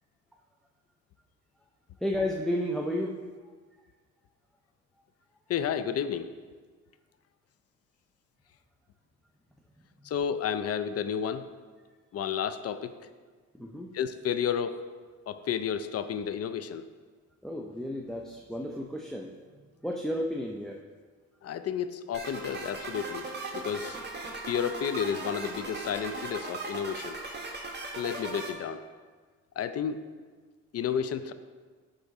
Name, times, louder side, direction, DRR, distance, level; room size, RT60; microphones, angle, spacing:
voice 1, 2.0-3.2 13.5-13.9 17.4-19.3 19.8-20.8, left 1 dB, ahead, 0 dB, 0.6 m, -32 dB
voice 2, 5.5-6.3 10.0-11.5 12.1-13.0 13.9-14.8 15.3-16.9 21.4-24.0 24.5-27.2 28.0-28.8 29.6-30.0 30.7-31.3, left 8 dB, 55° left, 11 dB, 0.5 m, -31 dB
sound 1, 22.1-28.5, right 3 dB, 35° right, 1.6 m, -38 dB
10.5 x 3.9 x 4.7 m, 1.5 s
cardioid pair, 90°, 30 cm